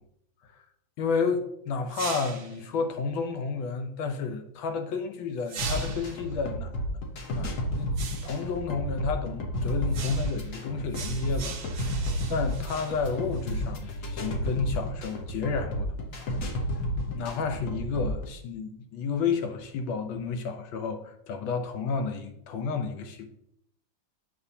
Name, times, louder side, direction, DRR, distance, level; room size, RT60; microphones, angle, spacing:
voice 1, 1.0-7.0 7.3-8.0 8.2-12.0 12.3-16.3 17.1-23.3, left 5 dB, 75° left, 1.6 m, -31 dB
sound 1, 1.9-2.6 5.4-6.2 7.9-8.4 9.9-10.5 10.9-13.7, right 6 dB, 80° right, 0.6 m, -40 dB
sound 2, 5.6-18.3, equal, 50° left, 1.1 m, -31 dB
8.0 x 6.3 x 2.8 m
omnidirectional pair, 2.2 m